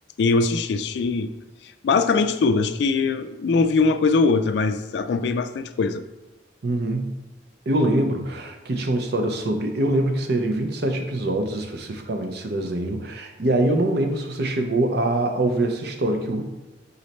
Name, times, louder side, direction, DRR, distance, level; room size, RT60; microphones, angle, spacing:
voice 1, 0.2-1.3 1.8-6.0, left 4 dB, 60° left, 10 dB, 0.3 m, -21 dB
voice 2, 6.6-7.2 7.7-16.4, right 1 dB, 55° right, 5 dB, 0.6 m, -24 dB
3.9 x 3.2 x 4.1 m, 1.1 s
head